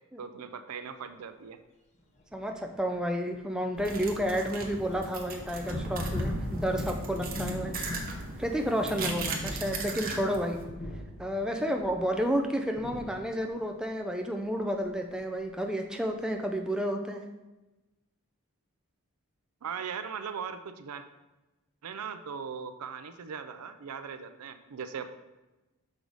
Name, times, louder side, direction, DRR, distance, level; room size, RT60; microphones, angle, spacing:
voice 1, 0.2-1.6 19.6-21.0 21.8-25.1, right 6 dB, 85° right, 9 dB, 0.5 m, -39 dB
sound 1, 2.3-2.4 2.7-13.7 14.8-14.9 15.1-15.4, left 1 dB, 30° left, 0.7 m, -39 dB
voice 2, 2.3-7.7 8.4-10.6 11.2-17.2, equal, 5° right, 3 dB, 0.4 m, -31 dB
sound 2, 3.8-10.6, right 3 dB, 40° right, 0.8 m, -39 dB
6.3 x 4.7 x 3.9 m, 1.1 s
head